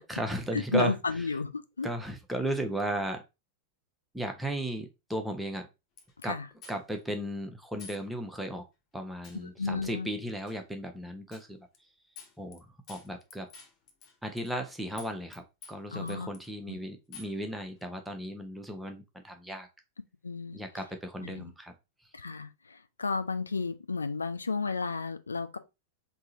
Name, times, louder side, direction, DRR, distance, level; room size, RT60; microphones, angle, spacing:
voice 1, 0.0-0.9 1.8-3.2 4.1-5.7 6.2-6.3 6.7-8.6 8.9-11.7 12.4-13.5 14.2-15.4 15.7-19.7 20.5-21.7, right 1 dB, 5° right, 0.9 m, -35 dB
voice 2, 0.5-1.9 6.2-6.5 9.4-10.1 15.9-16.3 16.7-16.8 20.2-20.6 21.2-21.5 22.1-25.6, left 4 dB, 75° left, 0.5 m, -32 dB
sound 1, 6.0-6.3 6.6-7.0 7.8-8.0 8.4-8.5 9.2-9.5 10.5-10.6 11.3-11.5 11.7-11.8 12.2-12.6 12.9-14.7 15.0-15.4 15.6-16.5 17.1-17.4, left 4 dB, 35° left, 0.9 m, -50 dB
3.7 x 2.9 x 4.0 m
figure-of-eight pair, 90°, 0 cm